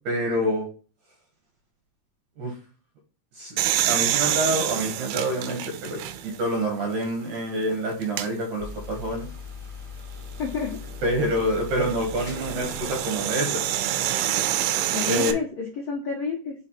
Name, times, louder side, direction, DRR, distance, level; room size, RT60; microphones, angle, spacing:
voice 1, 0.1-0.7 2.4-2.5 3.3-3.6 3.9-9.3 11.0-13.6 15.1-15.4, right 1 dB, 65° right, 2 dB, 2.1 m, -27 dB
sound 1, 3.6-6.5 7.0-7.1 8.0-8.3 10.4-15.3, right 12 dB, 80° right, 2.4 m, -27 dB
sound 2, 8.6-13.4, left 5 dB, 30° left, 1.4 m, -40 dB
voice 2, 10.4-10.8 14.9-16.5, left 5 dB, 75° left, -2 dB, 1.4 m, -29 dB
5.2 x 4.7 x 4.3 m, 0.38 s
omnidirectional pair, 4.8 m